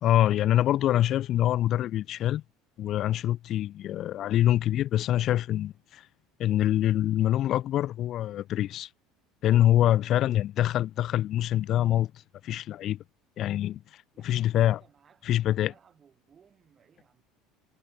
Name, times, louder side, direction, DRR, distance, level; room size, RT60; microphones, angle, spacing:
voice 1, 0.0-2.4 2.8-6.0 6.4-8.9 9.4-12.1 12.4-13.0 13.4-13.8 14.2-14.8 15.3-15.7, left 12 dB, 50° left, 0.5 m, -25 dB
voice 2, 14.1-17.2, right 7 dB, 30° right, 5.8 m, -62 dB
supercardioid pair, 110°, 0 cm